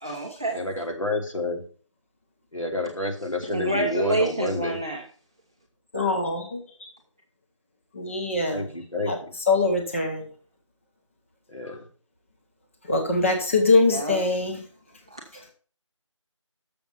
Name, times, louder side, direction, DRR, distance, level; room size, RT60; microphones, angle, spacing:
voice 1, 0.0-0.6 3.4-5.0 13.9-14.2 15.1-15.2, right 2 dB, 10° right, 0.7 m, -27 dB
voice 2, 0.5-1.6 2.5-4.8 8.5-9.3 11.5-11.9, left 2 dB, 90° left, 2.7 m, -29 dB
voice 3, 5.9-6.6 7.9-8.7 9.1-9.2 9.5-10.3 12.9-14.6, left 3 dB, 25° left, 1.1 m, -23 dB
6.9 x 6.6 x 5.6 m
figure-of-eight pair, 165°, 16 cm